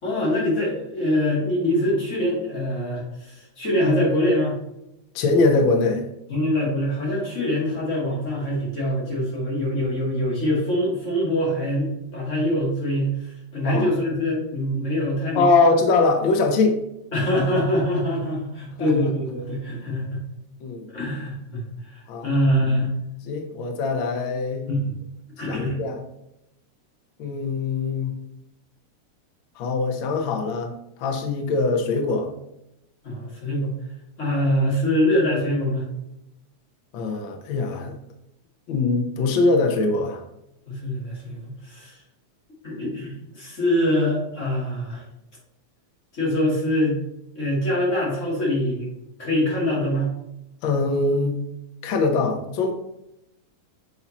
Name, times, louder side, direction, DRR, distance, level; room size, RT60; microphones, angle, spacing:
voice 1, 0.0-4.6 6.3-15.5 17.1-20.2 20.9-22.9 24.7-24.9 25.4-25.8 33.0-33.7 34.2-35.8 40.7-42.0 42.6-45.0 46.1-47.0 47.4-48.9 49.2-50.1, left 1 dB, 25° left, -5 dB, 2.3 m, -24 dB
voice 2, 5.1-6.0 13.6-13.9 15.3-16.8 18.8-18.9 20.6-20.9 22.1-22.3 23.3-24.7 25.5-26.0 27.2-28.1 29.6-30.7 31.0-32.3 36.9-38.0 38.7-40.2 50.6-51.4 51.8-52.7, left 3 dB, 90° left, 3 dB, 1.0 m, -22 dB
8.4 x 4.2 x 2.9 m, 0.85 s
omnidirectional pair, 3.5 m